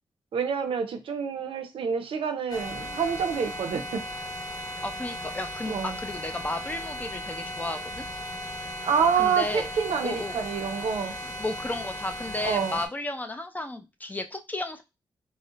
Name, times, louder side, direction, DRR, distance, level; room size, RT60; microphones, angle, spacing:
voice 1, 0.3-4.0 5.7-5.9 8.8-11.1 12.4-12.8, right 6 dB, 85° right, 0.5 m, -27 dB
sound 1, 2.5-12.9, equal, 45° left, 0.8 m, -36 dB
voice 2, 4.8-8.1 9.2-9.7 10.0-10.4 11.2-14.8, left 2 dB, 20° left, 0.4 m, -33 dB
2.4 x 2.1 x 3.7 m
wide cardioid pair, 95°, 9 cm